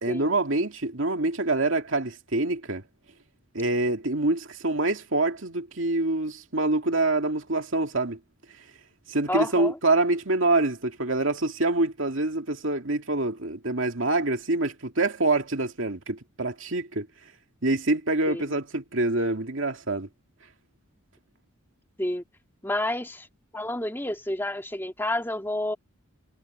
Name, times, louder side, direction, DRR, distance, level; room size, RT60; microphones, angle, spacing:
voice 1, 0.0-2.8 3.5-8.2 9.1-17.1 17.6-20.1, right 2 dB, 65° right, 2.5 m, -26 dB
voice 2, 9.3-9.8 18.3-18.4 22.0-22.2 22.6-23.3 23.5-25.8, left 1 dB, 10° left, 2.0 m, -29 dB
head